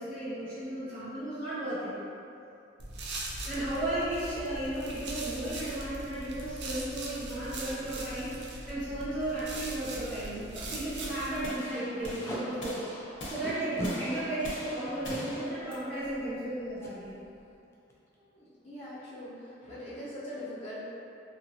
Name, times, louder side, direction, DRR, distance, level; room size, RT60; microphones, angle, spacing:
voice 1, 0.0-1.9 3.4-12.8 13.2-17.1, right 1 dB, 10° right, -18 dB, 1.3 m, -34 dB
sound 1, 2.8-11.4, right 2 dB, 65° right, 0.4 m, -40 dB
sound 2, 11.4-17.5, left 1 dB, 85° left, 0.7 m, -43 dB
Packing tape duct tape, 12.0-12.4 13.4-13.9 14.9-15.2 16.8-16.9 17.3-17.5 17.7-18.1, equal, 15° left, 0.3 m, -37 dB
voice 2, 18.2-20.8, left 1 dB, 35° left, -16 dB, 0.8 m, -42 dB
2.8 x 2.5 x 2.7 m, 2.6 s
head